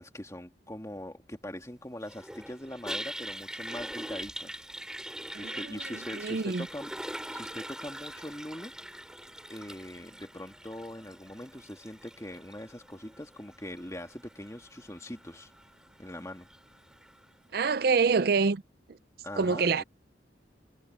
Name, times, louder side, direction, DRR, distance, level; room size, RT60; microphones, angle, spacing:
voice 1, 0.0-4.7 5.4-8.7 9.5-15.5 16.0-16.5 19.2-19.8, left 1 dB, 15° left, 2.3 m, -42 dB
Toilet flush, 2.0-17.2, right 1 dB, 5° right, 4.0 m, -43 dB
voice 2, 6.1-6.7 17.5-18.6 18.9-19.0 19.4-19.8, right 5 dB, 55° right, 0.5 m, -26 dB
head